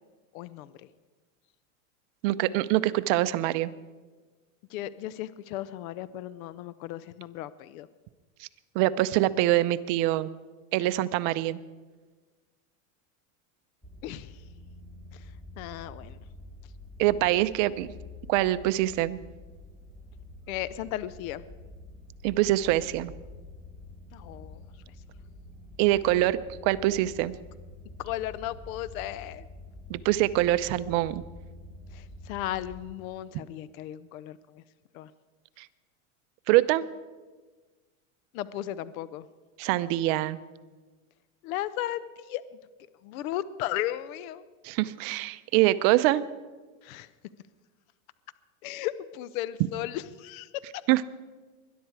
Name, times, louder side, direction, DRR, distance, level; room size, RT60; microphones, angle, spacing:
voice 1, 0.3-0.9 4.7-7.9 14.0-14.4 15.1-16.2 20.5-21.4 24.1-24.6 28.0-29.4 31.9-34.6 34.9-35.1 38.3-39.3 41.4-42.4 43.0-44.4 46.8-47.1 48.6-50.8, left 13 dB, 75° left, 16 dB, 0.7 m, -35 dB
voice 2, 2.2-3.7 8.7-10.3 10.7-11.6 17.0-17.9 18.3-19.2 22.2-23.1 25.8-26.4 26.6-27.4 29.9-31.2 35.6-35.7 36.5-36.9 39.6-40.4 44.6-46.2 50.9-51.0, right 16 dB, 55° right, 14 dB, 0.7 m, -24 dB
sound 1, 13.8-33.0, left 2 dB, ahead, 2.4 m, -47 dB
20.5 x 11.5 x 4.8 m, 1.3 s
supercardioid pair, 130°, 42 cm